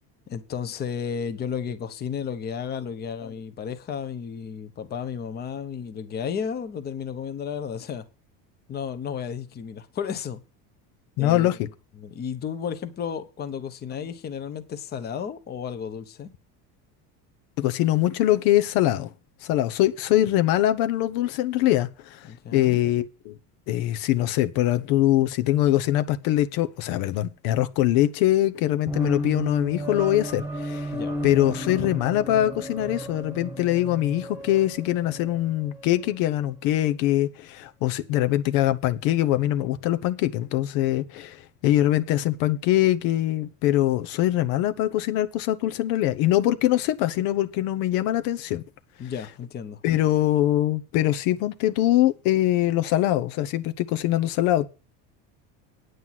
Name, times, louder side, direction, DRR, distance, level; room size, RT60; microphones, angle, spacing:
voice 1, 0.3-8.1 8.7-10.4 11.2-11.5 12.0-16.3 22.3-22.9 30.9-31.1 49.0-49.8, left 7 dB, 25° left, 1.0 m, -33 dB
voice 2, 11.2-11.7 17.6-19.1 19.4-23.3 23.7-30.9 31.2-48.6 49.8-54.7, left 14 dB, 70° left, 0.9 m, -23 dB
sound 1, 28.9-36.2, right 1 dB, 5° right, 1.3 m, -33 dB
9.5 x 8.0 x 5.8 m
cardioid pair, 175°, 36 cm